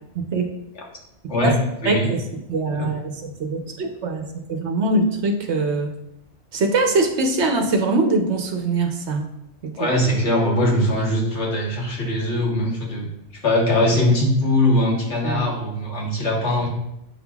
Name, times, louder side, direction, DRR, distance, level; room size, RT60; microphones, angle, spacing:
voice 1, 0.1-0.5 1.4-1.5 1.8-2.2 2.5-5.9 6.5-9.3 9.6-9.9 15.2-15.5, right 3 dB, 65° right, 3 dB, 1.1 m, -22 dB
voice 2, 1.3-2.1 2.8-2.9 9.8-13.1 13.4-16.7, left 1 dB, 65° left, -3 dB, 1.7 m, -21 dB
8.7 x 5.6 x 2.3 m, 0.83 s
omnidirectional pair, 1.3 m